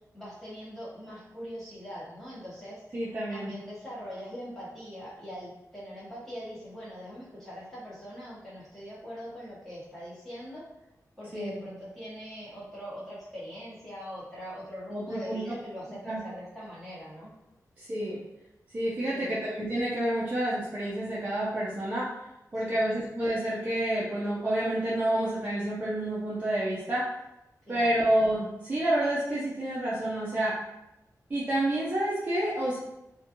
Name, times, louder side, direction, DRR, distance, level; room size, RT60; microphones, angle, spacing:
voice 1, 0.1-2.8 3.3-10.7 11.2-17.3 19.1-19.4 22.6-22.8 27.6-28.0, equal, 5° left, -11 dB, 1.0 m, -42 dB
voice 2, 2.9-3.5 11.3-11.6 14.9-15.4 16.1-16.2 17.8-18.2 18.7-22.1 22.5-27.1 27.7-30.6 31.3-32.8, right 1 dB, 30° right, -7 dB, 0.4 m, -29 dB
2.3 x 2.2 x 2.8 m, 0.91 s
wide cardioid pair, 170°, 6 cm